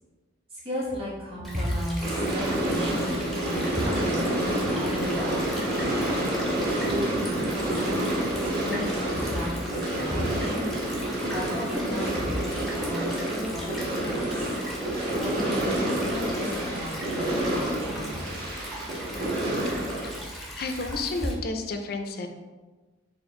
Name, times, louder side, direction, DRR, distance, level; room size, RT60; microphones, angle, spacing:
voice 1, 0.5-6.2 6.8-7.7 8.5-10.7 11.3-14.5 15.2-18.2, equal, 25° right, -7 dB, 1.3 m, -34 dB
Stream / Trickle dribble, 1.4-21.3, equal, ahead, 0.5 m, -39 dB
sound 1, 2.0-20.2, right 1 dB, 50° right, 1.4 m, -28 dB
voice 2, 20.5-22.3, left 3 dB, 50° left, 6 dB, 0.4 m, -31 dB
4.3 x 2.4 x 3.7 m, 1.3 s
head